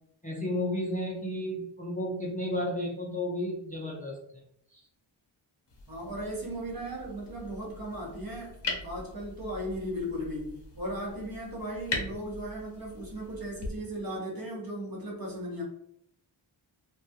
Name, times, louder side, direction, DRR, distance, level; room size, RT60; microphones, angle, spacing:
voice 1, 0.2-4.2 4.7-4.9, left 1 dB, 20° left, -4 dB, 0.4 m, -32 dB
sound 1, 5.7-13.7, left 3 dB, 60° left, 0.7 m, -41 dB
voice 2, 5.9-15.6, equal, 45° right, -3 dB, 0.9 m, -37 dB
2.3 x 2.2 x 2.6 m, 0.72 s
wide cardioid pair, 130°, 48 cm